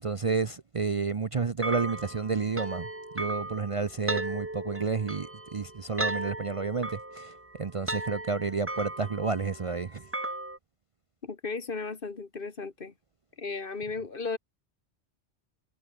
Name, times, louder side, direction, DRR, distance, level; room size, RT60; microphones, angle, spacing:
voice 1, 0.0-2.9 3.1-10.0, right 4 dB, 35° right, 0.6 m, -30 dB
sound 1, 1.6-10.6, right 1 dB, 10° right, 1.1 m, -36 dB
voice 2, 11.2-12.9 13.4-14.4, left 4 dB, 55° left, 1.9 m, -35 dB
omnidirectional pair, 1.1 m